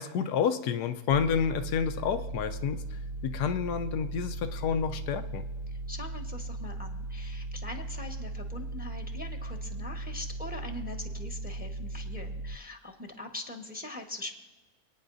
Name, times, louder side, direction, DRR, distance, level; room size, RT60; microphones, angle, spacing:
voice 1, 0.0-2.8 3.2-5.4, left 7 dB, 85° left, 9 dB, 1.2 m, -29 dB
sound 1, 1.1-12.6, right 2 dB, 85° right, 0.5 m, -37 dB
voice 2, 5.7-14.4, left 2 dB, 5° right, 3 dB, 1.0 m, -42 dB
27.0 x 9.4 x 2.6 m, 1.3 s
omnidirectional pair, 1.7 m